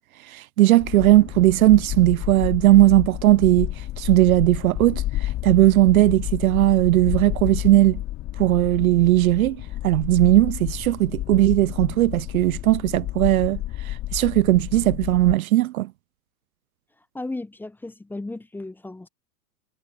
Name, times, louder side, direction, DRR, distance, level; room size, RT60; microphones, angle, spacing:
voice 1, 0.3-3.7 4.0-8.0 8.4-9.6 9.8-13.6 14.1-15.9, right 16 dB, 65° right, 0.5 m, -18 dB
sound 1, 0.8-15.4, left 15 dB, 30° left, 3.4 m, -31 dB
voice 2, 17.1-19.1, left 2 dB, 5° left, 0.8 m, -34 dB
hypercardioid pair, 110°, 46 cm